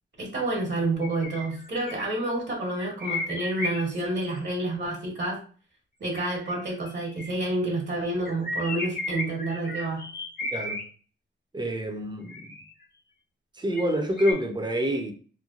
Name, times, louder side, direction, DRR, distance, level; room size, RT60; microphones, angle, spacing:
voice 1, 0.2-5.4 6.0-10.0, right 2 dB, 60° right, 1.2 m, -29 dB
sound 1, 1.0-2.1 2.8-4.2 6.1-7.5 8.3-10.8 12.3-12.8 13.7-14.3, left 1 dB, 50° left, 0.9 m, -34 dB
voice 2, 10.5-10.8 11.5-12.4 13.6-15.1, equal, 20° right, 0.6 m, -27 dB
3.1 x 2.2 x 2.5 m
cardioid pair, 75°, 21 cm